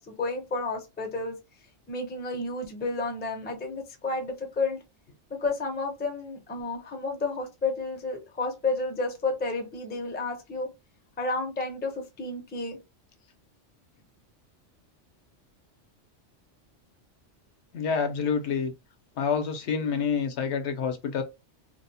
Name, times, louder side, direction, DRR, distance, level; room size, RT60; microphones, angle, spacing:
voice 1, 0.0-1.3 1.9-4.8 5.3-10.7 11.2-11.9 12.2-12.8, left 3 dB, 15° left, 0.4 m, -31 dB
voice 2, 17.7-18.7 19.2-21.2, left 6 dB, 75° left, 0.8 m, -27 dB
2.7 x 2.0 x 2.6 m
omnidirectional pair, 1.2 m